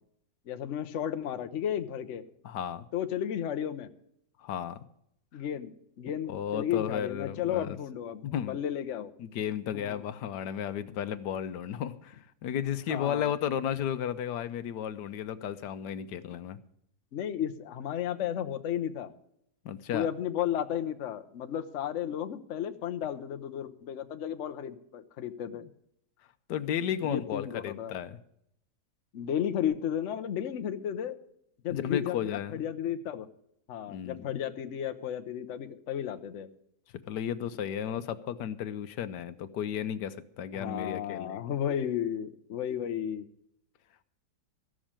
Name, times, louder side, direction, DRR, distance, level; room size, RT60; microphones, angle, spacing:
voice 1, 0.5-2.2 2.9-3.9 5.3-9.1 9.7-10.0 12.9-13.3 17.1-19.1 19.9-25.6 27.0-27.9 29.1-31.2 31.6-33.3 33.7-36.5 40.5-43.3, left 10 dB, 55° left, 7 dB, 1.0 m, -33 dB
voice 2, 2.4-2.9 4.4-4.8 6.3-7.8 8.2-8.6 9.2-16.6 19.6-20.1 26.5-28.2 31.7-32.6 33.9-34.3 37.1-41.4, left 9 dB, 80° left, 11 dB, 1.3 m, -34 dB
14.0 x 6.3 x 8.7 m, 0.74 s
omnidirectional pair, 1.8 m